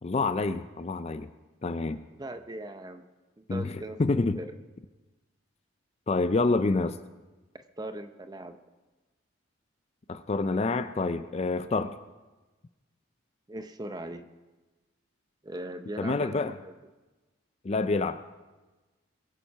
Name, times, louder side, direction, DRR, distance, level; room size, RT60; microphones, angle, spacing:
voice 1, 0.0-1.3 1.6-2.0 3.5-4.4 6.1-6.9 10.1-12.0 16.0-16.6 17.6-18.2, left 3 dB, 30° left, 12 dB, 0.4 m, -27 dB
voice 2, 2.2-3.1 3.4-4.5 7.5-8.6 13.5-14.3 15.4-16.8, right 1 dB, 20° right, 9 dB, 0.6 m, -40 dB
22.0 x 7.4 x 5.6 m, 1.2 s
head